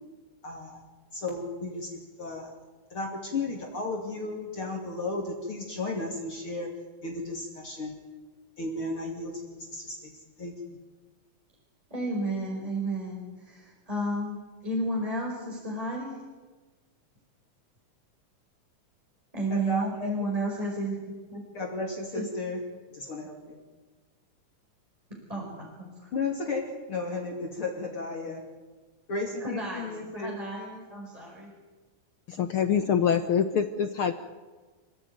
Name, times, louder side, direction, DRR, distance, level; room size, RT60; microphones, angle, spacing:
voice 1, 0.4-0.8 1.1-1.9 2.2-2.5 2.9-6.7 7.0-8.0 8.6-10.8 19.5-20.2 21.5-22.6 22.9-23.6 26.1-28.4 29.1-30.3, left 3 dB, 45° left, 0 dB, 3.3 m, -34 dB
voice 2, 11.9-14.4 14.6-16.1 19.3-21.0 21.3-21.4 22.2-22.3 25.3-26.1 29.4-31.5, right 1 dB, 10° right, -2 dB, 5.1 m, -32 dB
voice 3, 32.3-34.1, left 7 dB, 65° left, 9 dB, 1.4 m, -25 dB
27.5 x 16.5 x 9.5 m, 1.3 s
omnidirectional pair, 3.5 m